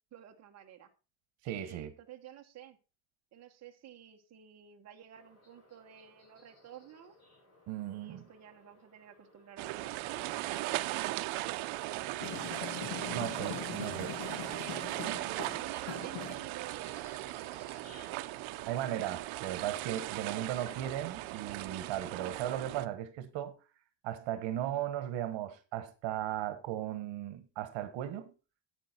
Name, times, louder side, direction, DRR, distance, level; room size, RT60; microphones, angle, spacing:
voice 1, 0.1-0.9 1.4-2.8 3.3-7.1 7.9-12.1 13.7-17.3 17.6-18.3, right 9 dB, 35° right, 1.2 m, -52 dB
voice 2, 1.4-1.9 7.7-8.2 12.8-14.1 18.7-23.6 24.0-28.3, right 12 dB, 70° right, 1.3 m, -37 dB
sound 1, 5.1-21.0, left 2 dB, 35° left, 7.3 m, -62 dB
sound 2, 9.6-22.9, right 18 dB, 85° right, 0.8 m, -38 dB
sound 3, 12.2-17.3, left 9 dB, 65° left, 1.5 m, -43 dB
9.5 x 9.0 x 4.3 m
cardioid pair, 170°, 46 cm